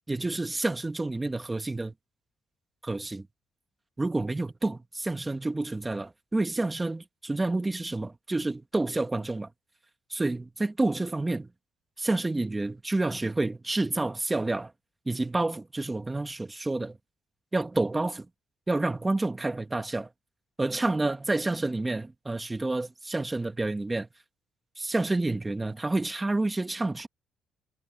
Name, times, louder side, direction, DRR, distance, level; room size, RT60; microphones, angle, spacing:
voice 1, 0.1-1.9 2.8-3.3 4.0-9.5 10.1-11.5 12.0-14.7 15.1-17.0 17.5-18.3 18.7-20.1 20.6-24.1 24.8-27.1, right 2 dB, 15° right, 1.7 m, -29 dB
cardioid pair, 90°, 0 cm